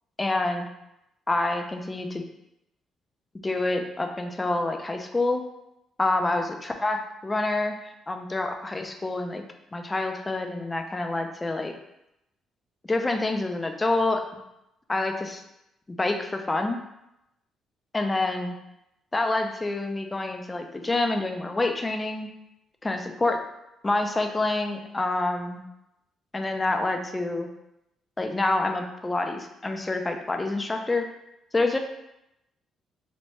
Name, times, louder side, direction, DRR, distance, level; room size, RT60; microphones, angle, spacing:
voice 1, 0.2-0.7 1.3-2.2 3.4-5.4 6.0-9.4 9.7-11.7 12.9-14.4 14.9-15.4 15.9-16.8 17.9-18.6 19.1-22.3 22.8-23.4 23.8-25.6 26.3-27.5 28.2-31.1 31.5-31.8, left 2 dB, 20° left, 5 dB, 0.3 m, -27 dB
3.1 x 2.1 x 2.9 m, 0.86 s
cardioid pair, 90°, 0 cm